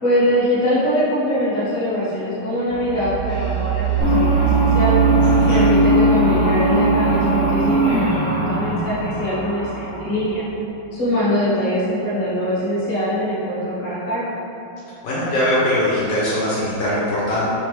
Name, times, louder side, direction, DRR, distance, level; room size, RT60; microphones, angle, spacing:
voice 1, 0.0-4.9 5.5-10.4 10.9-14.3, equal, 35° left, -11 dB, 0.7 m, -22 dB
sound 1, 2.7-10.4, right 11 dB, 70° right, 1.0 m, -23 dB
sound 2, 4.0-10.4, left 1 dB, 15° right, 0.5 m, -20 dB
voice 2, 5.2-5.7 15.0-17.4, left 1 dB, 70° left, -8 dB, 1.2 m, -21 dB
3.3 x 3.2 x 3.2 m, 2.9 s
omnidirectional pair, 2.3 m